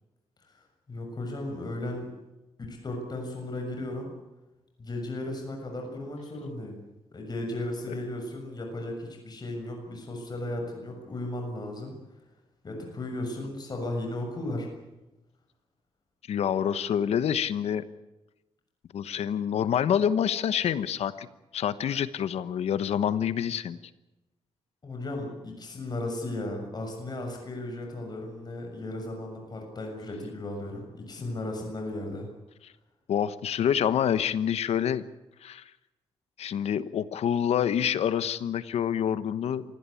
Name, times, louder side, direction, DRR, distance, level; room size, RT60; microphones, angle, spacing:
voice 1, 0.9-2.1 2.6-4.1 4.8-6.8 7.1-11.9 12.6-14.7 24.8-32.3, left 1 dB, 40° left, 2 dB, 6.9 m, -35 dB
voice 2, 16.3-17.8 18.9-21.3 21.5-23.8 33.1-35.0 35.4-35.6 36.4-39.6, left 9 dB, 90° left, 14 dB, 1.2 m, -27 dB
26.0 x 17.5 x 8.6 m, 1.0 s
cardioid pair, 95°, 10 cm